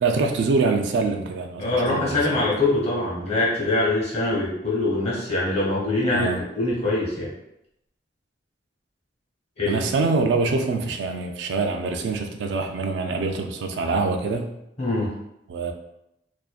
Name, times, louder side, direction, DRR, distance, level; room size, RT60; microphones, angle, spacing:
voice 1, 0.0-2.5 6.1-6.4 9.7-14.5 15.5-15.7, right 3 dB, 80° right, 4 dB, 0.3 m, -25 dB
voice 2, 1.6-6.3 6.5-7.3 9.6-9.8 14.8-15.1, left 2 dB, 40° left, -6 dB, 1.0 m, -23 dB
2.5 x 2.1 x 2.3 m, 0.82 s
head